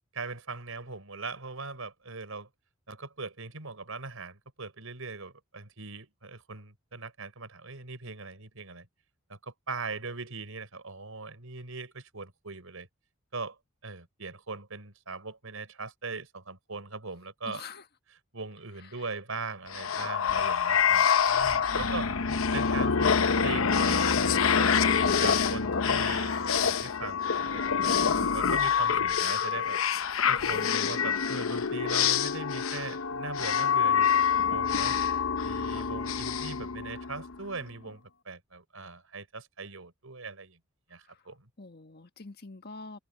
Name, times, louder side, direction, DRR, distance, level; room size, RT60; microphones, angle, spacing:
voice 1, 0.1-2.5 2.9-8.9 9.3-12.9 13.3-13.6 13.8-17.6 18.3-22.1 22.5-24.8 25.2-29.8 30.3-35.0 35.4-40.6 40.9-41.5, right 3 dB, 90° right, 4.2 m, -40 dB
voice 2, 17.4-17.9 18.7-19.1 21.7-22.5 41.0-41.3 41.6-43.0, left 3 dB, 50° left, 1.6 m, -46 dB
sound 1, 19.7-37.3, left 6 dB, 80° left, 0.9 m, -26 dB
head